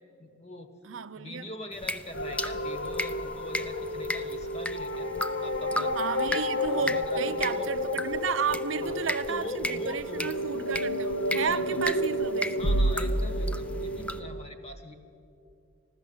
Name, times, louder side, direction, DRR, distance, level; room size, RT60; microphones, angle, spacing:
voice 1, 0.2-0.7 1.2-5.1 5.4-6.0 6.7-7.7 8.8-9.0 9.3-10.3 11.3-11.9 12.5-14.9, left 1 dB, 35° left, 1.2 m, -42 dB
voice 2, 0.9-1.5 6.0-12.6, right 6 dB, 80° right, 0.5 m, -33 dB
sound 1, 1.7-14.2, left 1 dB, 5° left, 0.3 m, -37 dB
sound 2, 2.1-14.4, equal, 75° left, 0.8 m, -30 dB
15.0 x 12.5 x 7.9 m
head